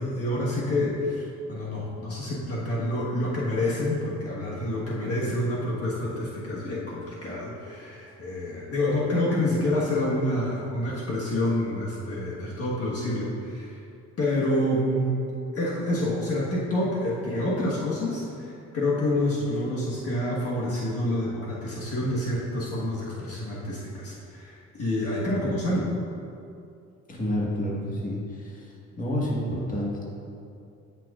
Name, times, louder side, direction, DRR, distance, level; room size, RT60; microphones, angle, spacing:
voice 1, 0.0-13.8 14.2-15.2 15.5-25.9, left 1 dB, 50° left, -6 dB, 1.4 m, -28 dB
voice 2, 27.1-30.0, equal, 25° left, -4 dB, 1.5 m, -29 dB
9.4 x 5.9 x 2.4 m, 2.6 s
cardioid pair, 90°, 30 cm